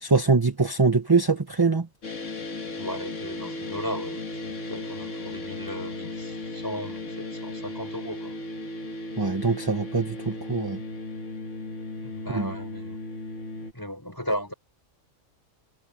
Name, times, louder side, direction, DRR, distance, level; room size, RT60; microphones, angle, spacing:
voice 1, 0.0-1.9 9.2-10.8 12.3-12.5, right 4 dB, 20° right, 0.8 m, -23 dB
sound 1, 2.0-13.7, left 2 dB, 65° left, 2.1 m, -36 dB
voice 2, 2.8-8.4 12.0-13.0 13.6-14.5, equal, 15° left, 5.9 m, -36 dB
omnidirectional pair, 1.4 m